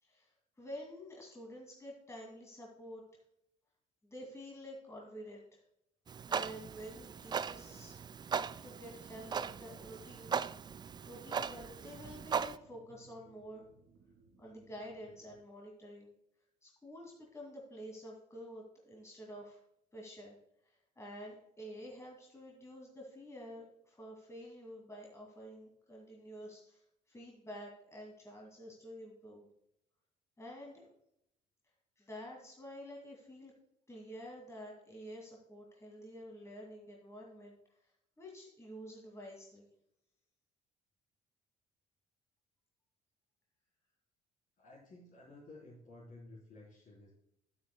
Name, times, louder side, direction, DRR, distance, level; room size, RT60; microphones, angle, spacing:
voice 1, 0.0-3.0 4.0-5.6 6.3-7.9 8.3-10.4 11.1-13.7 14.4-16.1 16.6-19.6 19.9-20.4 20.6-29.5 30.4-30.9 32.0-33.5 33.9-37.5 37.8-37.9 38.2-39.7, equal, 15° left, -1 dB, 2.4 m, -49 dB
Clock, 6.1-12.6, right 6 dB, 20° right, 0.3 m, -39 dB
sound 1, 9.4-15.4, right 5 dB, 50° right, 1.5 m, -64 dB
voice 2, 44.6-47.1, left 2 dB, 45° left, -8 dB, 4.0 m, -54 dB
12.0 x 9.4 x 2.2 m, 0.76 s
figure-of-eight pair, 50°, 20 cm